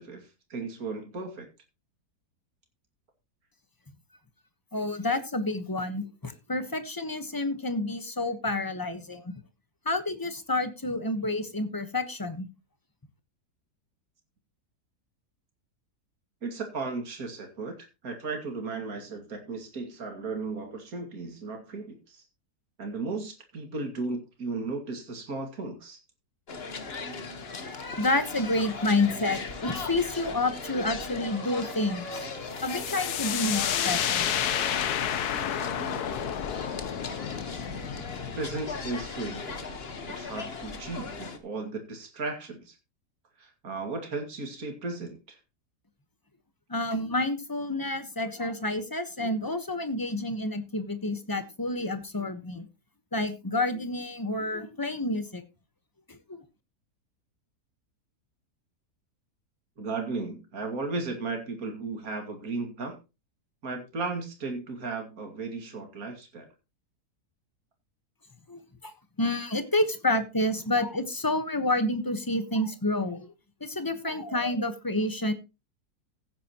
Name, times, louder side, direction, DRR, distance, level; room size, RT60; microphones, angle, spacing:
voice 1, 0.0-1.5 16.4-22.2 22.8-26.0 38.3-39.8 40.1-42.8 43.4-45.4 59.8-63.0 63.6-66.5, right 3 dB, 60° right, 3 dB, 2.7 m, -35 dB
voice 2, 4.7-9.4 9.8-12.5 27.5-32.1 32.6-34.3 46.7-52.7 53.1-55.4 56.1-56.4 68.5-68.9 69.2-73.3 73.6-75.3, left 2 dB, 15° left, 10 dB, 1.0 m, -29 dB
sound 1, 26.5-41.4, left 4 dB, 40° left, 1.5 m, -38 dB
sound 2, 30.5-38.7, right 5 dB, 45° right, 2.9 m, -48 dB
sound 3, 32.6-40.2, left 9 dB, 75° left, 1.4 m, -31 dB
15.5 x 9.2 x 3.0 m, 0.28 s
omnidirectional pair, 1.7 m